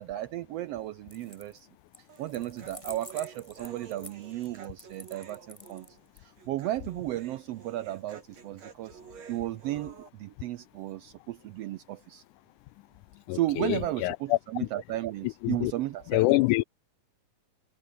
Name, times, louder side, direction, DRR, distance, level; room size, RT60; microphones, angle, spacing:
voice 1, 0.0-1.7 2.2-5.9 6.2-9.0 9.3-12.2 13.3-16.4, right 15 dB, 80° right, 1.4 m, -34 dB
sound 1, 1.0-1.6 1.9-6.2, left 2 dB, 10° left, 2.5 m, -48 dB
Human voice, 2.1-10.1, right 6 dB, 60° right, 4.3 m, -50 dB
voice 2, 13.3-14.4 15.4-15.7 16.1-16.6, left 21 dB, 85° left, 2.0 m, -25 dB
omnidirectional pair, 3.5 m